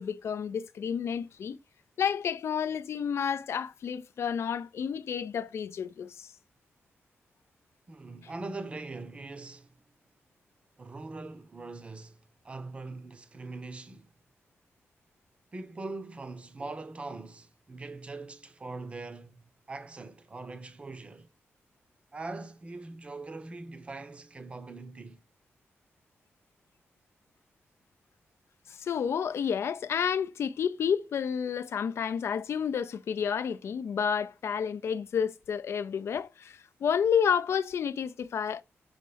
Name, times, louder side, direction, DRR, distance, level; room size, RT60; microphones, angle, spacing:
voice 1, 0.0-1.6 2.0-6.3 28.7-38.6, left 7 dB, 70° left, 0.4 m, -30 dB
voice 2, 7.9-9.8 10.8-14.1 15.5-21.3 22.1-25.2, right 3 dB, 25° right, 0.7 m, -42 dB
6.1 x 5.6 x 3.3 m
wide cardioid pair, 165°, 5 cm